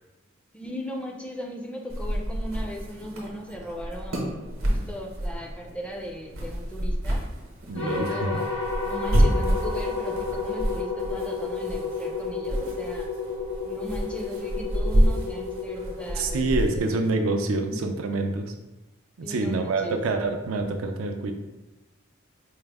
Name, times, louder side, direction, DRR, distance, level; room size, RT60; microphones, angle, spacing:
voice 1, 0.5-7.2 7.7-8.5 8.8-13.1 13.6-17.1 17.5-17.8 19.2-20.0, equal, 5° left, 0 dB, 0.4 m, -37 dB
sound 1, 1.9-17.1, right 1 dB, 70° right, 0.8 m, -29 dB
voice 2, 7.7-8.3 16.2-18.5 19.2-21.3, right 3 dB, 90° right, 5 dB, 0.5 m, -26 dB
sound 2, 7.8-17.1, left 4 dB, 75° left, 0.8 m, -32 dB
4.5 x 2.0 x 3.4 m, 1.1 s
head